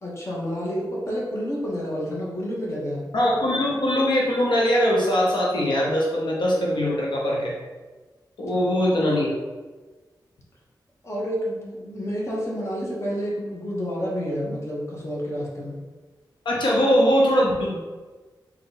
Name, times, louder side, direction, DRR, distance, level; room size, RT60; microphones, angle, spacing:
voice 1, 0.0-3.0 8.5-8.6 11.0-15.8, equal, 35° left, -4 dB, 1.1 m, -29 dB
voice 2, 3.1-7.5 8.4-9.3 16.4-17.8, equal, 85° left, -3 dB, 0.8 m, -21 dB
3.8 x 2.9 x 3.9 m, 1.3 s
wide cardioid pair, 120°, 8 cm